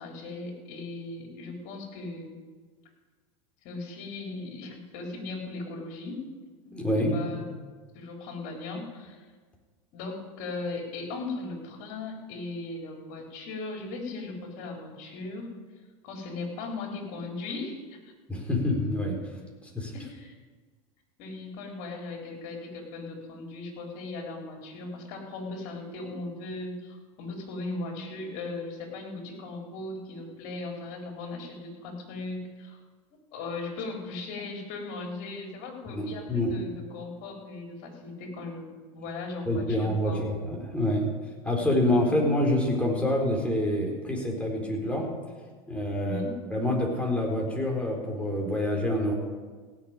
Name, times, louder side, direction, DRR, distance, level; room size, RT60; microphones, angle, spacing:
voice 1, 0.0-2.4 3.6-6.2 6.6-7.4 7.9-9.2 9.9-15.5 16.0-18.0 19.9-20.3 21.2-32.8 33.3-40.3 41.6-41.7 46.0-46.3, left 3 dB, 55° left, 1 dB, 4.0 m, -38 dB
voice 2, 6.7-7.1 18.3-19.2 19.7-19.9 35.9-36.5 39.5-41.1 41.4-45.1 45.7-46.2 46.5-49.1, left 1 dB, 5° left, -1 dB, 4.2 m, -27 dB
16.5 x 6.8 x 8.9 m, 1.4 s
hypercardioid pair, 95°, 18 cm